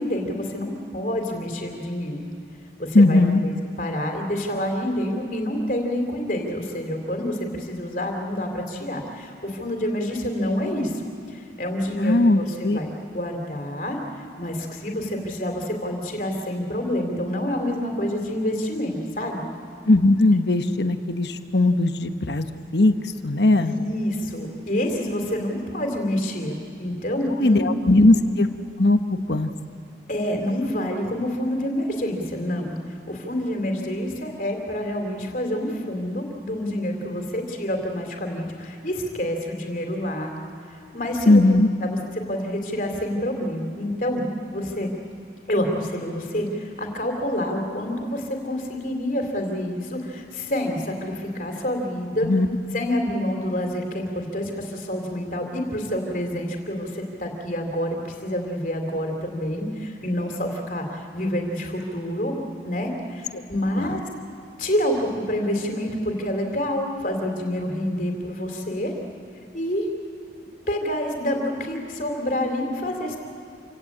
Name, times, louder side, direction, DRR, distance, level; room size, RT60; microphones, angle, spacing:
voice 1, 0.0-2.3 2.8-3.5 3.8-10.9 11.3-14.0 14.4-19.4 23.5-27.6 30.1-32.7 33.1-40.3 40.9-41.4 41.8-42.0 42.3-44.2 44.5-44.9 45.5-52.3 52.7-62.4 62.6-64.0 64.6-68.9 69.5-69.9 70.7-73.2, left 1 dB, 50° left, 3 dB, 3.3 m, -27 dB
voice 2, 2.9-3.4 11.9-12.8 19.9-22.5 22.7-23.0 23.2-23.7 27.4-28.5 28.8-29.5 41.3-41.7 52.2-52.5 63.8-63.9, left 2 dB, 75° left, 8 dB, 1.1 m, -18 dB
27.5 x 17.0 x 8.7 m, 2.3 s
head